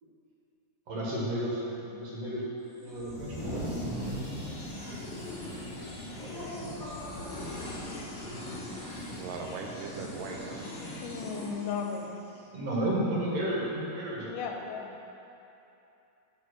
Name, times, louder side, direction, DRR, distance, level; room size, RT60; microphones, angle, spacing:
voice 1, 0.9-2.4 2.8-3.4 6.2-7.1 10.0-10.3 12.5-14.3, right 1 dB, 60° right, -5 dB, 2.2 m, -33 dB
sound 1, 2.7-12.4, left 1 dB, 50° left, 0.6 m, -42 dB
sound 2, 3.0-6.7 7.0-7.2 7.6-8.0 9.1-9.2 10.3-10.4, equal, 20° right, 0.6 m, -38 dB
Laughter, 4.8-8.5, left 1 dB, 30° left, 2.0 m, -44 dB
voice 2, 9.1-10.7, right 4 dB, 85° right, 2 dB, 2.3 m, -39 dB
voice 3, 11.0-12.3 14.3-15.0, left 5 dB, 85° left, 2 dB, 2.3 m, -35 dB
8.4 x 4.4 x 6.5 m, 2.8 s
omnidirectional pair, 3.8 m